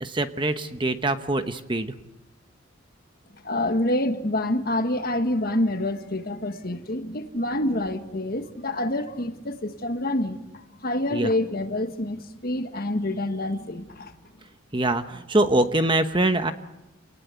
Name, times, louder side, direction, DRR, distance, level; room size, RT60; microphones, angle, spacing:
voice 1, 0.0-1.9 11.1-11.3 14.7-16.5, right 2 dB, 25° right, 1.0 m, -24 dB
voice 2, 3.4-14.2, left 1 dB, 45° left, 1.6 m, -27 dB
28.0 x 19.5 x 8.2 m
head